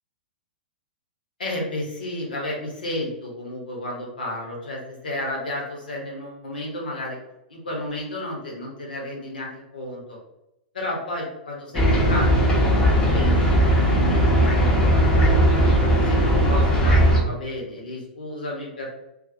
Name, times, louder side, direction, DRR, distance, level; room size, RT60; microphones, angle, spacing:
voice 1, 1.4-7.2 7.5-10.2 10.7-15.4 15.9-18.9, left 1 dB, 70° left, -2 dB, 1.0 m, -32 dB
sound 1, 11.7-17.2, equal, 15° left, 0.7 m, -18 dB
2.4 x 2.3 x 2.7 m, 0.86 s
figure-of-eight pair, 105°, 5 cm